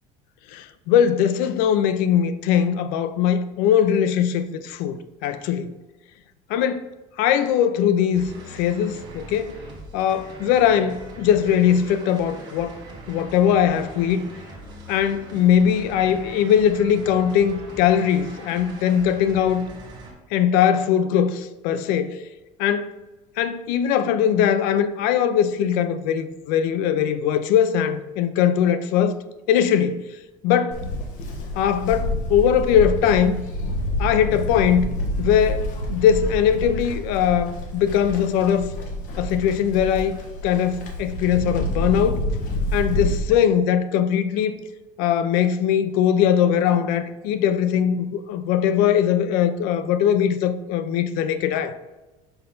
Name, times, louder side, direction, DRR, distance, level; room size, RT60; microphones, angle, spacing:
voice 1, 0.5-5.7 6.5-6.9 7.2-9.6 9.9-12.8 13.1-14.3 14.9-19.6 20.3-22.2 22.6-22.9 23.4-29.2 29.5-30.0 30.4-30.8 31.6-33.4 34.0-34.9 35.2-38.7 39.2-40.2 40.4-42.2 42.7-44.6 45.0-51.8, left 9 dB, 70° left, 0.5 m, -20 dB
sound 1, 8.1-20.1, right 2 dB, 30° right, 1.4 m, -41 dB
Livestock farm animals working animals, 30.7-43.2, left 1 dB, 55° left, 1.3 m, -28 dB
5.6 x 5.6 x 3.8 m
cardioid pair, 165°, 15 cm